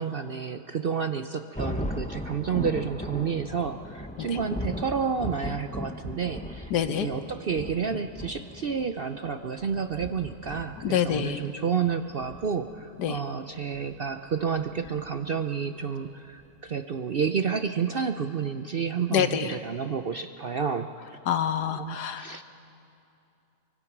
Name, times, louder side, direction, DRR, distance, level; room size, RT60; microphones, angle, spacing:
voice 1, 0.0-21.2 21.7-22.4, right 6 dB, 55° right, 7 dB, 0.6 m, -30 dB
Thunder, 1.5-15.5, left 1 dB, 5° left, 0.6 m, -38 dB
voice 2, 6.7-7.1 10.8-11.4 13.0-13.2 19.1-19.6 21.3-22.4, left 9 dB, 85° left, 10 dB, 1.6 m, -26 dB
24.5 x 23.5 x 6.0 m, 2.7 s
omnidirectional pair, 1.7 m